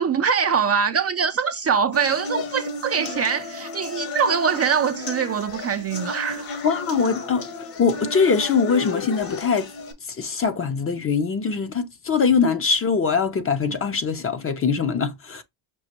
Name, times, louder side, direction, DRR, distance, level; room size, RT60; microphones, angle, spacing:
voice 1, 0.0-6.6, right 6 dB, 35° right, 0.4 m, -23 dB
sound 1, 1.9-9.9, left 3 dB, 50° left, 1.3 m, -33 dB
voice 2, 6.6-7.5 7.8-9.7 10.1-15.4, left 5 dB, 30° left, 0.7 m, -22 dB
6.1 x 2.5 x 2.9 m
cardioid pair, 110°, 47 cm